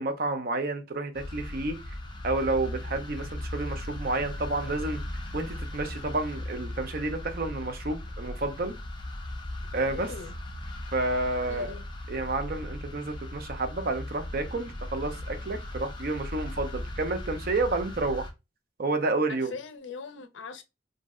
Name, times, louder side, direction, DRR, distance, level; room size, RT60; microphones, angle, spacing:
voice 1, 0.0-1.8 2.2-5.0 5.3-8.7 9.7-10.1 10.9-11.7 12.1-18.3 18.8-19.5, right 2 dB, 50° right, 0.5 m, -30 dB
sound 1, 1.1-18.3, left 1 dB, 25° left, 0.5 m, -38 dB
voice 2, 9.9-10.3 11.5-11.8 19.3-20.6, left 4 dB, 75° left, 0.5 m, -41 dB
2.6 x 2.0 x 3.5 m
head